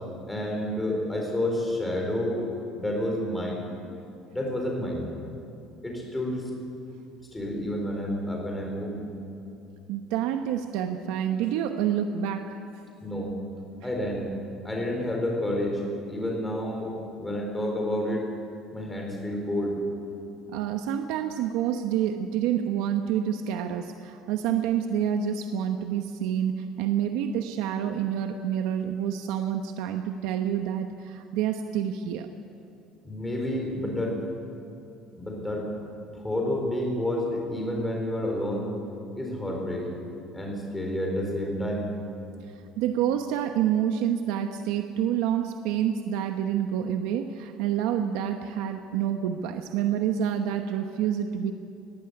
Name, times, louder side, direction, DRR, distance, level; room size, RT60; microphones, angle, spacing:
voice 1, 0.3-3.7 4.3-5.0 5.8-6.5 7.3-9.0 13.0-13.3 13.8-14.3 14.6-15.8 16.1-18.3 18.7-19.8 33.0-34.2 35.2-35.7 36.1-38.7 39.2-40.0 40.3-41.9, left 1 dB, 5° left, 0 dB, 4.2 m, -29 dB
voice 2, 9.9-12.5 20.5-32.3 42.8-51.5, right 9 dB, 85° right, 6 dB, 1.0 m, -28 dB
20.0 x 15.0 x 9.8 m, 2.6 s
cardioid pair, 165°, 0 cm